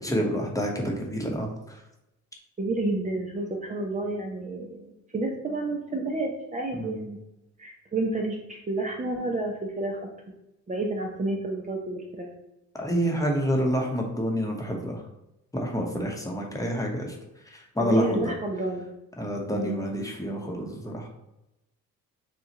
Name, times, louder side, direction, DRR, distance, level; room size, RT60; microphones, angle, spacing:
voice 1, 0.0-1.8 6.7-7.0 12.7-15.0 15.5-17.2 17.5-18.3 19.2-21.1, equal, 10° left, 0 dB, 1.0 m, -28 dB
voice 2, 2.6-4.9 5.1-7.2 7.6-10.1 10.7-12.3 17.8-18.9 19.5-19.8, right 2 dB, 25° right, 0 dB, 0.7 m, -30 dB
6.9 x 2.4 x 2.9 m, 0.90 s
cardioid pair, 90°, 30 cm